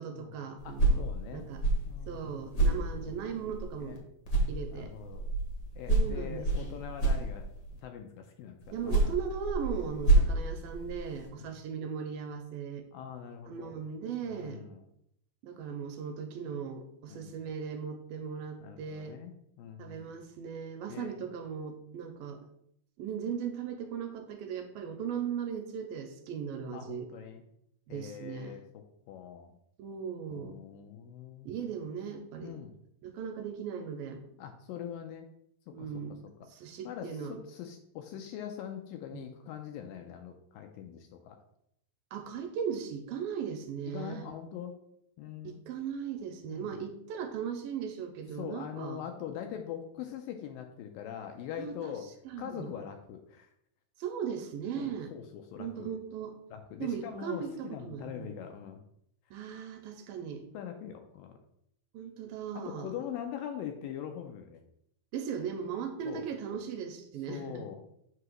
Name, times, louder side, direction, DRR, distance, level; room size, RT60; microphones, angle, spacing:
voice 1, 0.0-1.0 1.3-1.6 2.1-4.0 4.5-4.9 5.9-6.8 8.7-12.9 13.4-14.6 15.4-19.2 19.8-22.5 23.0-27.1 27.9-28.6 29.8-30.6 31.5-32.6 33.0-34.2 35.7-36.2 36.5-37.4 39.1-39.3 42.1-44.3 45.4-49.0 51.6-51.9 52.3-52.7 54.0-55.1 55.6-56.3 56.8-58.3 59.3-60.5 61.9-62.9 65.1-67.7, right 7 dB, 80° right, 5 dB, 2.3 m, -38 dB
voice 2, 0.6-1.4 1.9-3.1 3.8-4.0 4.7-5.3 5.8-7.5 7.8-8.9 10.0-10.1 11.3-11.5 12.9-13.8 14.2-14.8 17.1-17.3 18.6-20.2 20.9-21.1 26.7-27.4 27.9-29.5 30.3-31.5 32.4-32.7 34.4-35.3 35.7-35.9 36.8-41.4 43.9-44.8 45.2-45.6 46.5-46.8 48.4-52.1 52.4-53.5 54.7-55.9 56.5-58.8 60.5-61.4 62.6-64.6 66.1-66.3 67.3-67.8, left 9 dB, 80° left, 5 dB, 2.1 m, -43 dB
sound 1, 0.6-4.0 4.3-7.8 8.6-11.3, right 2 dB, 65° left, 1.2 m, -29 dB
7.8 x 2.9 x 6.1 m, 0.75 s
omnidirectional pair, 4.3 m